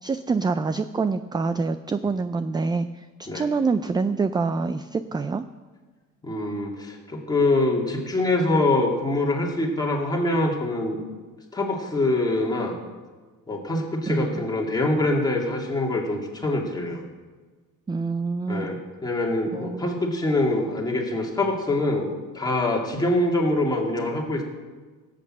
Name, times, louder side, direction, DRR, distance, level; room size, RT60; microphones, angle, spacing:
voice 1, 0.0-5.4 14.1-14.4 17.9-18.7 19.5-19.9, right 4 dB, 15° right, 12 dB, 0.3 m, -26 dB
voice 2, 6.2-11.0 11.5-12.7 13.5-17.0 18.5-24.4, left 2 dB, 10° left, -1 dB, 2.4 m, -24 dB
17.5 x 8.3 x 7.5 m, 1.4 s
cardioid pair, 145°, 32 cm